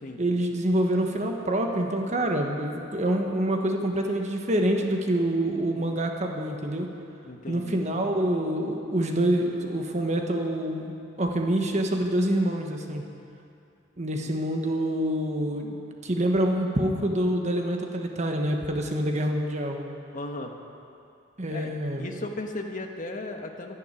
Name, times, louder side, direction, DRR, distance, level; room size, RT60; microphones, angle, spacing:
voice 1, 0.2-6.9 7.5-13.0 14.0-19.8 21.4-22.1, right 1 dB, 35° right, 2 dB, 1.4 m, -26 dB
voice 2, 7.2-7.8 14.2-14.3 20.1-20.5 21.5-23.8, left 2 dB, 45° left, 3 dB, 1.4 m, -36 dB
12.0 x 11.0 x 9.8 m, 2.6 s
head